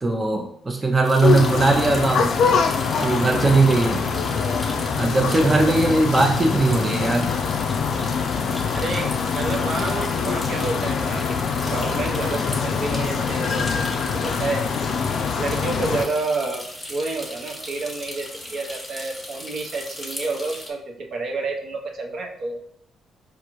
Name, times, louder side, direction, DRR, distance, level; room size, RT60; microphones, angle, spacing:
voice 1, 0.0-2.3 3.0-4.0 5.0-7.3, right 3 dB, 25° right, 1 dB, 0.5 m, -19 dB
sound 1, 1.0-20.7, left 1 dB, 5° left, 1.1 m, -37 dB
sound 2, 1.2-16.1, left 5 dB, 65° left, 0.3 m, -24 dB
voice 2, 8.7-11.4 11.6-14.6 15.4-16.6 16.9-22.6, right 3 dB, 60° right, 1 dB, 0.7 m, -29 dB
4.7 x 2.5 x 3.0 m, 0.67 s
cardioid pair, 90°, 0 cm